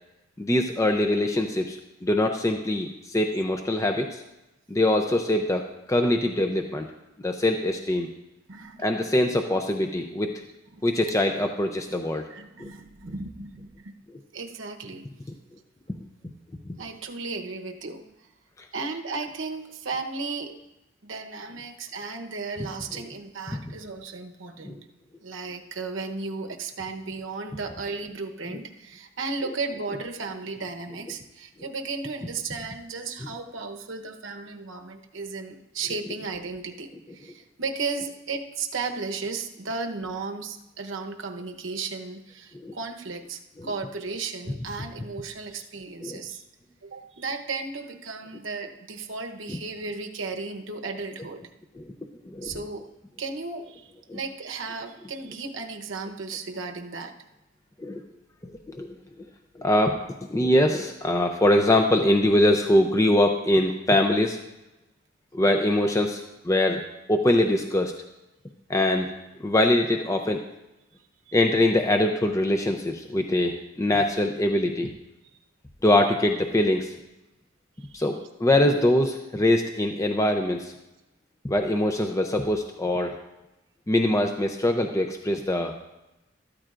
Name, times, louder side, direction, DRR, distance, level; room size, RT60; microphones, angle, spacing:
voice 1, 0.4-4.2 4.7-5.6 5.9-6.9 7.2-8.1 8.8-10.3 10.8-12.2 12.6-12.7 16.7-16.8 23.5-23.6 24.6-24.8 42.5-42.8 43.6-43.7 46.0-46.2 51.8-51.9 52.3-52.5 54.1-54.2 57.8-58.0 58.7-58.9 59.6-60.0 60.3-64.4 65.3-66.8 67.1-67.9 68.7-69.1 69.4-70.4 71.3-74.9 75.8-76.9 77.9-80.7 81.4-83.2 83.9-85.7, left 1 dB, 15° left, 4 dB, 0.5 m, -23 dB
voice 2, 8.5-8.9 10.7-11.1 12.3-13.9 14.3-15.1 16.8-18.0 18.7-20.6 21.0-24.8 25.2-46.4 46.8-51.4 52.4-52.9 53.2-57.1 71.3-71.4 77.9-78.0, right 4 dB, 70° right, 5 dB, 0.9 m, -35 dB
13.5 x 13.5 x 2.5 m, 0.96 s
head